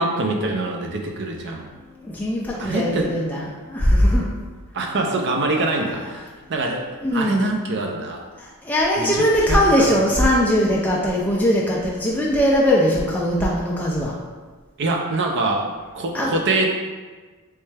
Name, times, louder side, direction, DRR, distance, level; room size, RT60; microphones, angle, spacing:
voice 1, 0.0-1.7 2.6-3.1 4.7-6.2 6.5-8.2 9.0-9.9 14.8-15.7 15.9-16.7, right 2 dB, 55° right, 2 dB, 0.5 m, -24 dB
voice 2, 2.0-4.3 7.0-7.6 8.4-14.2 16.1-16.4, equal, 5° left, -4 dB, 0.3 m, -20 dB
3.3 x 3.2 x 3.2 m, 1.3 s
head